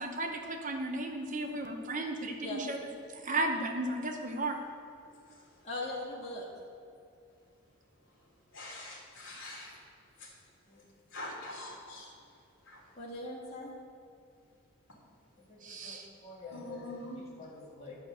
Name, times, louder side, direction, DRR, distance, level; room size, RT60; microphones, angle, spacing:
voice 1, 0.0-2.8 3.1-4.6 15.6-16.1, right 2 dB, 35° right, 4 dB, 0.8 m, -34 dB
voice 2, 5.6-6.4 10.7-10.8 13.0-13.7 15.5-16.0 16.2-18.0, left 2 dB, 30° left, -4 dB, 2.1 m, -42 dB
voice 3, 8.5-9.7 11.1-12.0 16.5-17.2, left 1 dB, 55° left, -3 dB, 3.4 m, -43 dB
12.0 x 6.6 x 7.9 m, 2.5 s
head